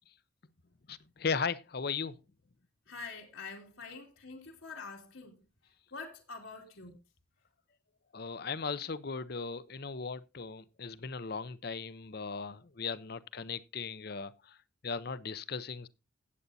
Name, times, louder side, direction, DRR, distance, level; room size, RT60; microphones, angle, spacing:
voice 1, 0.9-2.1 8.1-14.6 14.8-15.9, left 5 dB, 50° left, 0.6 m, -37 dB
voice 2, 2.9-5.4 5.9-6.9, left 4 dB, 80° left, 2.5 m, -45 dB
17.0 x 8.2 x 2.7 m
head